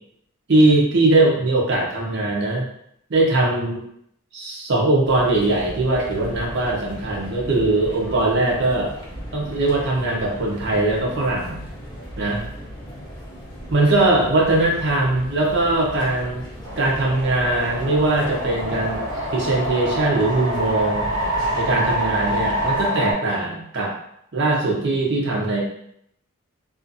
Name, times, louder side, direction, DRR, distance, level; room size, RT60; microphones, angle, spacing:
voice 1, 0.5-2.6 3.1-3.8 4.3-8.9 9.3-11.6 12.2-12.4 13.7-16.4 16.8-19.0 19.3-21.1 21.5-23.9 24.3-25.6, right 2 dB, 50° right, -2 dB, 0.6 m, -20 dB
sound 1, 5.0-22.9, equal, 20° left, 0.6 m, -37 dB
sound 2, 16.6-23.1, right 1 dB, 85° right, 1.1 m, -26 dB
2.5 x 2.4 x 2.5 m, 0.72 s
head